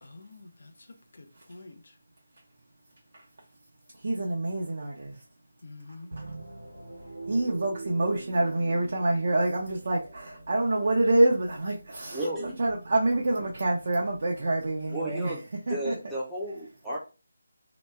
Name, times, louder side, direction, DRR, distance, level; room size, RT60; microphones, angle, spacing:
voice 1, 0.0-2.0 5.6-6.1, left 3 dB, 60° left, 0.6 m, -48 dB
voice 2, 3.9-5.2 7.3-15.3 15.7-15.9, right 2 dB, 55° right, 0.7 m, -27 dB
sound 1, 6.1-14.9, right 2 dB, 75° right, 1.0 m, -45 dB
voice 3, 12.1-12.5 14.9-17.0, right 1 dB, ahead, 0.7 m, -33 dB
2.9 x 2.1 x 3.3 m
figure-of-eight pair, 170°, 0 cm